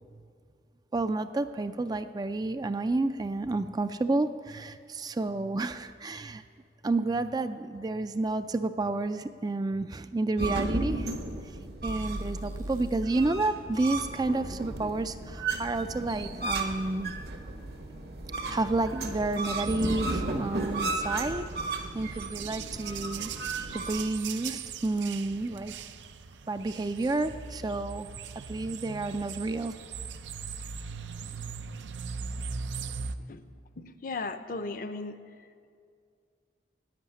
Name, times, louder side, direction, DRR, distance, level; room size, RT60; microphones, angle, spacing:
voice 1, 0.9-6.4 6.8-11.1 11.8-17.1 18.5-21.5 21.9-23.3 23.7-25.7 26.5-28.1 28.5-29.8, right 2 dB, 20° right, 10 dB, 0.3 m, -30 dB
sound 1, 10.4-24.0, right 2 dB, 65° right, 1.1 m, -34 dB
sound 2, 11.9-15.8, right 1 dB, 45° right, 0.7 m, -42 dB
sound 3, 19.1-33.2, right 6 dB, 90° right, 0.5 m, -40 dB
voice 2, 33.8-35.7, left 3 dB, 50° left, 10 dB, 0.6 m, -37 dB
11.0 x 8.4 x 9.9 m, 2.3 s
head